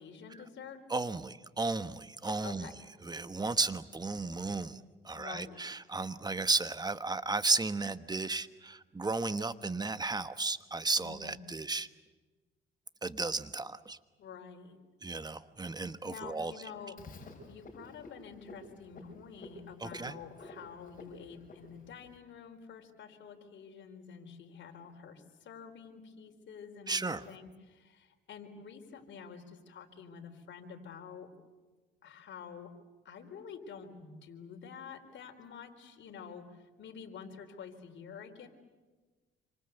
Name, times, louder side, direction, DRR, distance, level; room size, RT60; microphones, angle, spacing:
voice 1, 0.0-0.8 2.4-2.7 5.2-5.6 11.0-11.4 14.2-14.8 16.0-17.0 17.5-31.3 32.0-32.7 33.0-38.5, left 6 dB, 70° left, 4 dB, 4.2 m, -48 dB
voice 2, 0.9-2.7 3.0-11.9 13.0-14.0 15.0-16.5 19.8-20.2 26.9-27.2, right 3 dB, 20° right, 12 dB, 1.3 m, -34 dB
Frog, 17.0-22.2, left 2 dB, 45° left, 7.0 m, -51 dB
27.5 x 26.0 x 8.1 m, 1.3 s
cardioid pair, 90°, 20 cm